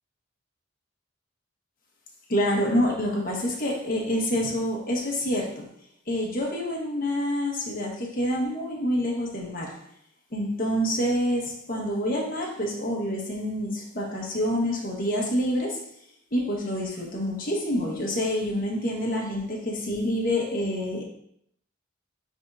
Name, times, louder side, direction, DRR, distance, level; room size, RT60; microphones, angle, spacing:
voice 1, 2.3-5.7 6.1-9.8 10.3-15.8 16.3-21.0, equal, 45° left, -2 dB, 1.4 m, -27 dB
9.6 x 3.7 x 2.6 m, 0.71 s
head